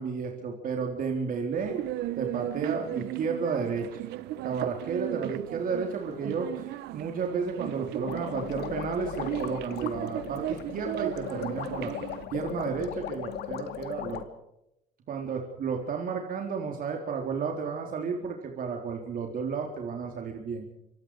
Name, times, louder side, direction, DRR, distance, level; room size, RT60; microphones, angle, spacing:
voice 1, 0.0-1.8 2.2-4.1 4.4-11.9 12.3-14.2 15.1-20.7, right 5 dB, 55° right, 2 dB, 3.9 m, -32 dB
sound 1, 1.6-12.2, right 14 dB, 85° right, 1.2 m, -36 dB
sound 2, 8.0-14.2, left 10 dB, 75° left, 2.6 m, -38 dB
27.0 x 25.5 x 5.0 m, 0.84 s
cardioid pair, 110°, 17 cm